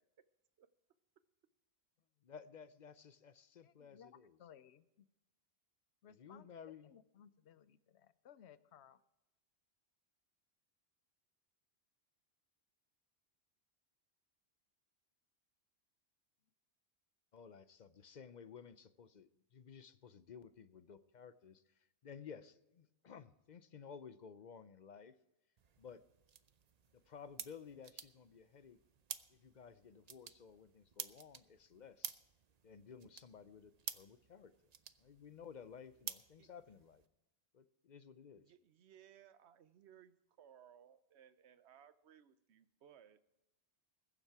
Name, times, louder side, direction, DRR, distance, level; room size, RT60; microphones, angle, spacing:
voice 1, 2.2-4.4 6.1-6.9 17.3-21.6 22.0-25.1 25.8-26.0 26.9-28.8 29.3-32.2 32.6-34.7 35.0-37.0 37.5-38.5, left 6 dB, 50° left, 0.7 m, -55 dB
voice 2, 3.6-5.1 6.0-9.0, left 9 dB, 85° left, 0.9 m, -62 dB
sound 1, 25.6-37.1, right 7 dB, 45° right, 0.6 m, -52 dB
voice 3, 38.3-43.2, right 9 dB, 85° right, 1.0 m, -63 dB
21.0 x 7.3 x 4.7 m
omnidirectional pair, 1.1 m